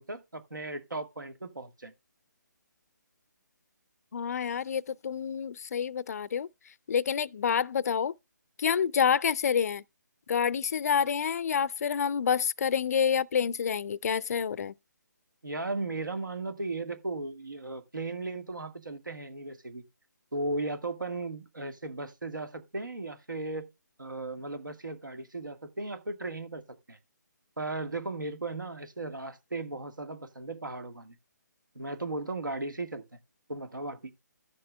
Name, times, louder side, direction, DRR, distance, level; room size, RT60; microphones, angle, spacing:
voice 1, 0.0-1.9 15.4-19.8 20.3-23.7 24.0-27.0 27.6-31.2 31.7-33.0 33.5-34.1, right 2 dB, 90° right, 1.5 m, -36 dB
voice 2, 4.1-6.5 6.9-8.1 8.6-9.8 10.3-14.7, left 7 dB, 55° left, 0.4 m, -28 dB
14.5 x 6.6 x 2.2 m
figure-of-eight pair, 145°, 10 cm